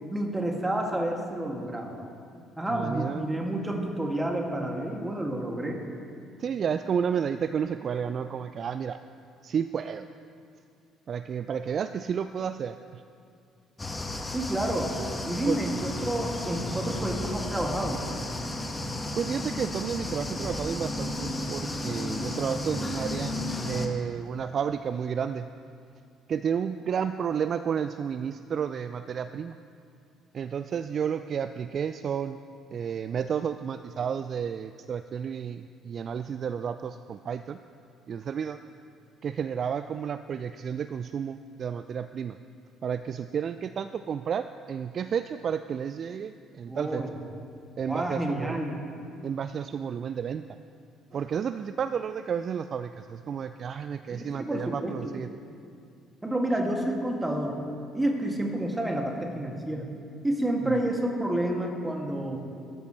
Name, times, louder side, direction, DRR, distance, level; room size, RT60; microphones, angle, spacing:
voice 1, 0.1-2.0 2.6-5.8 14.3-14.9 15.2-18.0 46.7-47.1 47.9-48.8 54.1-55.0 56.2-57.6 57.9-59.9 60.2-62.4, right 1 dB, 15° right, 1 dB, 2.4 m, -29 dB
voice 2, 2.7-3.3 6.4-9.0 9.4-10.1 11.1-13.0 15.5-15.6 19.2-25.5 26.3-29.6 30.3-32.4 32.7-37.6 38.1-38.6 39.2-42.4 42.8-47.1 47.8-48.6 49.2-50.4 51.1-55.3, right 7 dB, 45° right, 11 dB, 0.4 m, -31 dB
sound 1, 13.8-23.9, left 1 dB, 20° left, 1.6 m, -33 dB
19.5 x 13.0 x 3.3 m, 2.4 s
figure-of-eight pair, 50°, 0 cm